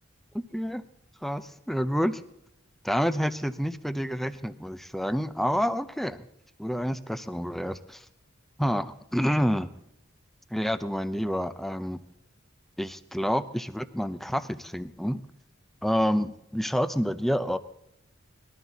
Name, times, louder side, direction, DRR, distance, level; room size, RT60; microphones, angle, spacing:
voice 1, 0.3-0.8 1.2-2.2 2.8-6.2 6.6-8.0 8.6-8.9 9.1-9.7 10.5-12.0 12.8-15.2 15.8-17.6, equal, ahead, 12 dB, 0.5 m, -28 dB
20.0 x 12.5 x 4.0 m, 0.81 s
head